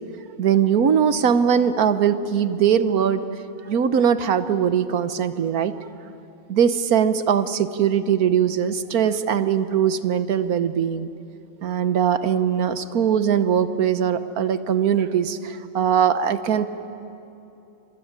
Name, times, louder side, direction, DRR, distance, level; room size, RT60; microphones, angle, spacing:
voice 1, 0.4-3.3 3.7-5.7 6.5-11.1 11.6-16.9, right 8 dB, 85° right, 11 dB, 1.5 m, -21 dB
26.5 x 22.0 x 9.7 m, 2.9 s
omnidirectional pair, 1.5 m